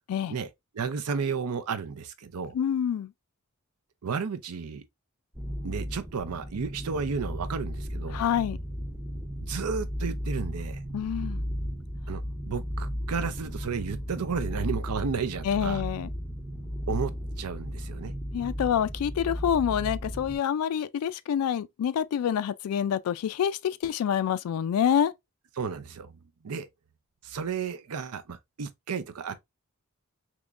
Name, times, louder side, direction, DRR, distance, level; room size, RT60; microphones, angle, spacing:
voice 1, 0.7-2.5 4.0-4.8 5.6-8.2 9.4-10.8 12.1-15.8 16.9-17.1 17.4-18.1 25.6-26.2 26.4-26.7 27.2-29.4, right 5 dB, 90° right, 0.5 m, -33 dB
voice 2, 2.5-3.1 8.1-8.6 10.9-11.4 15.4-16.1 18.3-25.1, left 8 dB, 80° left, 0.3 m, -27 dB
sound 1, 5.3-20.4, equal, 10° right, 0.6 m, -35 dB
3.6 x 3.0 x 2.4 m
head